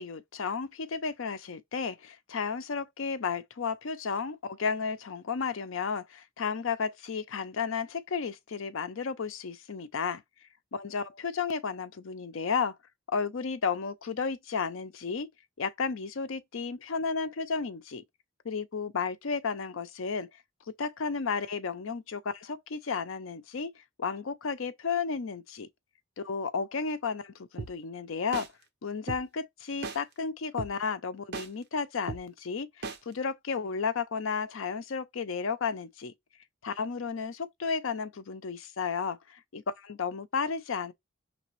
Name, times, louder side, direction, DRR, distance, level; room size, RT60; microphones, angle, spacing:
voice 1, 0.0-10.2 10.7-12.8 13.1-15.3 15.6-18.0 18.4-20.3 20.7-25.7 26.2-28.5 28.8-36.1 36.6-40.9, left 5 dB, 65° left, 0.5 m, -33 dB
sound 1, 27.6-27.7 28.3-28.5 29.1-29.2 29.8-30.0 30.6-30.7 31.3-31.5 32.1-32.2 32.8-33.0, right 3 dB, 55° right, 0.9 m, -35 dB
5.0 x 3.3 x 3.1 m
head